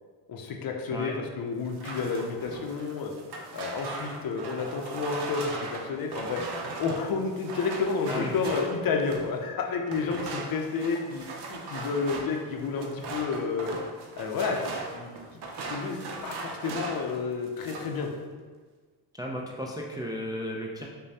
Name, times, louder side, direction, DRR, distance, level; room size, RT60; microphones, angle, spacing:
voice 1, 0.3-3.1 3.5-6.4 6.8-13.7 14.2-15.2 15.7-18.1, left 4 dB, 50° left, 2 dB, 0.6 m, -30 dB
sound 1, 1.6-9.4 9.9-17.2 17.4-18.0, right 3 dB, 60° right, 0.7 m, -38 dB
voice 2, 19.1-20.9, equal, 10° right, -2 dB, 0.3 m, -34 dB
5.0 x 2.2 x 2.7 m, 1.5 s
supercardioid pair, 65°, 45 cm